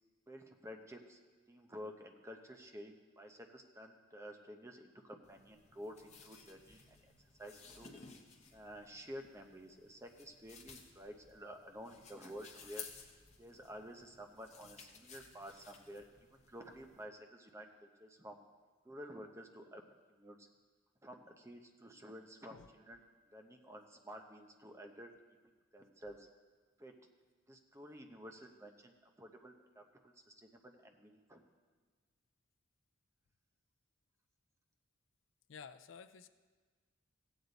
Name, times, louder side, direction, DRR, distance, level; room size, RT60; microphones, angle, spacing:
voice 1, 0.3-1.2 1.5-7.0 7.4-7.9 8.5-12.9 13.4-18.4 18.8-19.8 20.1-20.5 21.0-23.0 23.3-25.1 25.7-26.3 26.8-26.9 27.5-31.4, equal, 15° right, 4 dB, 0.7 m, -51 dB
sound 1, 5.2-17.0, left 5 dB, 35° left, 0.9 m, -57 dB
voice 2, 35.5-36.3, left 6 dB, 75° left, 12 dB, 0.5 m, -53 dB
16.0 x 8.1 x 4.0 m, 1.4 s
head